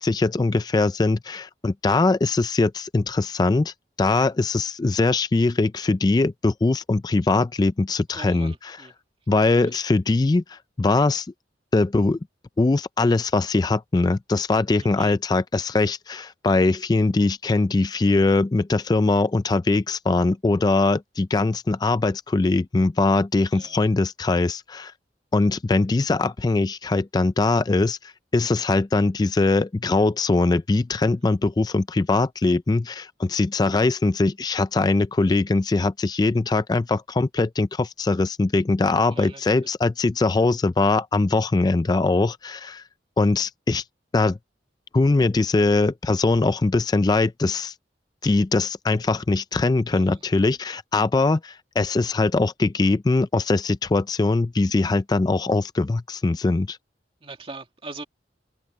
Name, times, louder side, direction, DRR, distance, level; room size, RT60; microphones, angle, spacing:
voice 1, 0.0-8.9 9.3-11.3 11.7-12.2 12.6-24.9 25.3-42.8 43.2-43.8 44.1-44.4 44.9-47.7 48.2-56.8, left 3 dB, 25° left, 0.3 m, -21 dB
voice 2, 8.1-8.9 9.5-9.8 14.8-15.2 23.5-23.9 39.1-39.5 49.9-50.2 57.2-58.0, right 3 dB, 30° right, 2.2 m, -41 dB
head